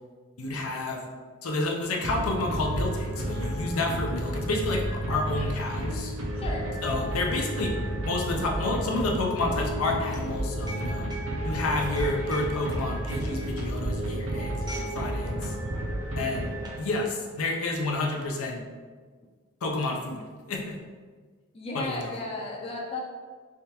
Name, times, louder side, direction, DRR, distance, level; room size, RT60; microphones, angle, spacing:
voice 1, 0.4-1.0 1.4-6.1 6.8-7.7 8.0-11.1 11.4-15.5 16.2-16.5 16.8-18.6 19.6-20.2 20.5-20.8 21.7-22.1, left 2 dB, 80° left, 0 dB, 0.6 m, -30 dB
sound 1, 2.0-17.1, right 1 dB, 65° right, 0.6 m, -31 dB
sound 2, 5.0-15.0 15.3-15.5 16.2-16.8, right 1 dB, 20° right, 0.7 m, -46 dB
voice 2, 6.4-6.8 21.5-23.0, left 2 dB, 25° left, -2 dB, 0.5 m, -34 dB
3.5 x 3.3 x 2.9 m, 1.5 s
head